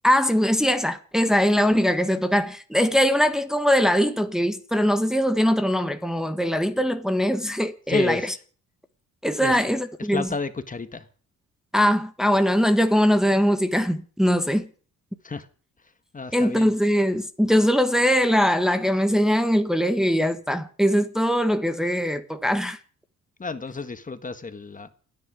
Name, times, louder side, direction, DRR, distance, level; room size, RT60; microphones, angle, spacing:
voice 1, 0.0-8.3 9.2-10.3 11.7-14.7 16.3-22.8, equal, ahead, 1.4 m, -21 dB
voice 2, 7.9-8.4 9.4-9.6 10.1-11.1 15.2-15.5 16.1-16.7 23.4-24.9, left 4 dB, 25° left, 1.6 m, -31 dB
29.0 x 9.8 x 5.1 m
cardioid pair, 90°, 30 cm